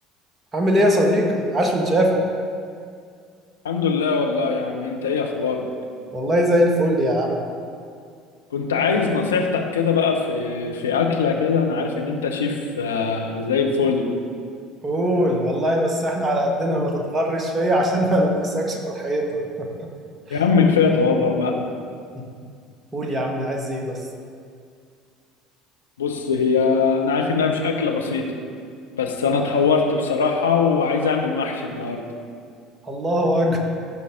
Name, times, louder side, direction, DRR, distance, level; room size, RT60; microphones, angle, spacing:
voice 1, 0.5-2.2 6.1-7.4 14.8-19.3 19.6-19.9 20.3-20.4 22.1-22.2 22.9-24.0 32.8-33.6, equal, 25° right, 1 dB, 1.7 m, -21 dB
voice 2, 3.6-5.6 8.5-14.0 20.3-21.5 26.0-28.2 28.9-32.0, left 5 dB, 80° left, 2 dB, 0.9 m, -21 dB
15.0 x 5.7 x 3.8 m, 2.2 s
figure-of-eight pair, 65°, 0 cm